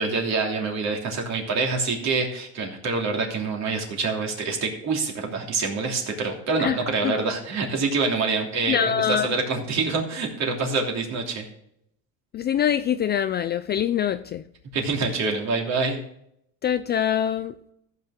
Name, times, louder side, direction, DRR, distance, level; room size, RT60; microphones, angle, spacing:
voice 1, 0.0-11.5 14.7-16.0, right 4 dB, 50° right, 3.0 m, -26 dB
voice 2, 8.7-9.3 12.3-14.4 16.6-17.5, left 9 dB, 30° left, 0.4 m, -24 dB
14.5 x 6.6 x 3.7 m
cardioid pair, 130°, 36 cm